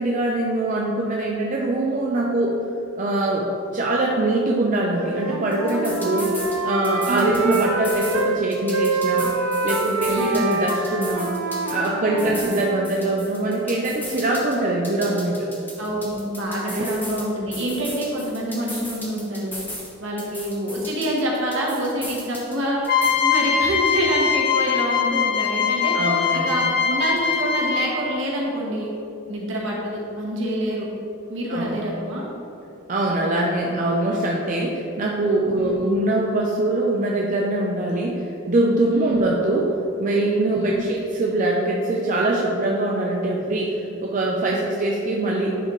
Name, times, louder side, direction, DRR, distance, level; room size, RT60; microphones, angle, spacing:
voice 1, 0.0-2.6 3.0-9.3 9.6-11.3 11.7-15.5 16.7-16.9 25.9-26.5 31.5-31.8 32.9-39.7 40.0-45.6, right 2 dB, 40° right, -2 dB, 0.5 m, -23 dB
Wind instrument woodwind instrument, 4.9-8.4 8.7-12.9, right 2 dB, 85° right, 0.6 m, -26 dB
sound 1, 5.5-6.6 6.8-8.2 8.5-11.9 12.2-14.6 14.8-17.2 17.5-19.9 20.2-22.6 22.8-23.1, left 1 dB, 10° left, 0.8 m, -36 dB
voice 2, 12.0-12.4 15.8-19.5 20.0-22.8 23.2-25.9 26.3-28.9 29.3-30.9 31.3-32.3 35.6-36.0 38.9-39.3 40.5-40.8, right 1 dB, 65° right, -3 dB, 1.3 m, -27 dB
sound 2, 22.9-28.1, left 6 dB, 50° left, 0.6 m, -22 dB
9.9 x 4.0 x 3.1 m, 2.8 s
head